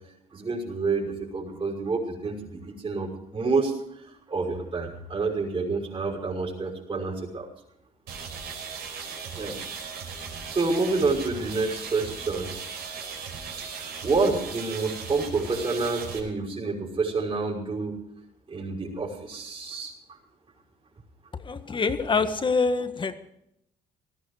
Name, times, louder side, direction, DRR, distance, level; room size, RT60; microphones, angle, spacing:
voice 1, 0.3-7.5 9.3-9.6 10.5-12.5 13.7-18.0 18.5-19.9, right 3 dB, 30° right, -4 dB, 5.7 m, -28 dB
sound 1, 8.1-16.2, right 5 dB, 75° right, 5.2 m, -37 dB
voice 2, 21.4-23.1, left 4 dB, 30° left, 9 dB, 1.6 m, -25 dB
18.0 x 15.0 x 5.0 m, 0.77 s
cardioid pair, 110°, 17 cm